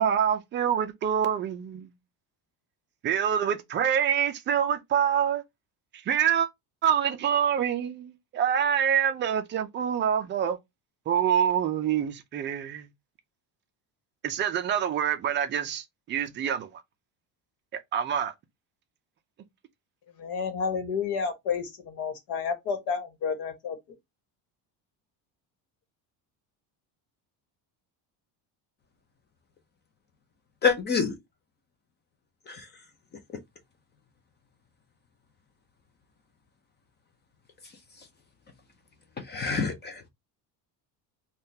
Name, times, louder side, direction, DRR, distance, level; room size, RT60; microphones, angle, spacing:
voice 1, 0.0-1.9 3.0-5.4 6.1-6.5 6.8-10.6 11.1-12.9 14.2-16.8 17.9-18.3, right 8 dB, 30° right, 0.4 m, -26 dB
voice 2, 20.2-23.8, left 6 dB, 65° left, 1.3 m, -30 dB
voice 3, 30.6-31.1 32.5-32.7 39.3-40.1, left 5 dB, 25° left, 0.5 m, -27 dB
3.6 x 2.3 x 2.7 m
cardioid pair, 170°, 43 cm